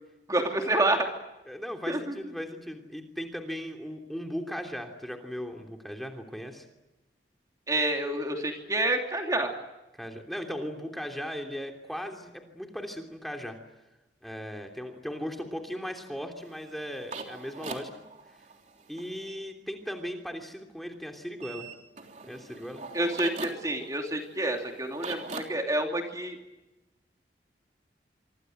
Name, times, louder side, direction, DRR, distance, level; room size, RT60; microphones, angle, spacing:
voice 1, 0.3-1.1 1.9-2.3 7.7-9.5 22.9-26.4, right 1 dB, 20° right, 3 dB, 2.9 m, -28 dB
voice 2, 1.5-6.6 10.0-13.6 14.2-17.9 18.9-21.7 22.2-22.8, equal, ahead, 3 dB, 3.0 m, -37 dB
sound 1, 16.4-19.4 21.4-25.4, right 4 dB, 40° right, 3.5 m, -42 dB
26.5 x 25.5 x 7.9 m, 1.0 s
head